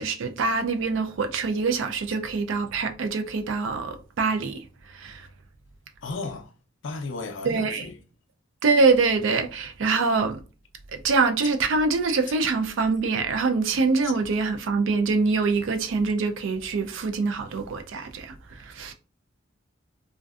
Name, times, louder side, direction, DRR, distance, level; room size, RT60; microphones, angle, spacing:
voice 1, 0.0-4.6 4.9-5.3 7.4-7.9 8.6-10.4 10.9-18.9, right 4 dB, 65° right, 0.4 m, -24 dB
voice 2, 6.0-6.5 6.8-8.0 14.0-14.1, left 3 dB, 60° left, 0.4 m, -34 dB
2.5 x 2.2 x 2.3 m
head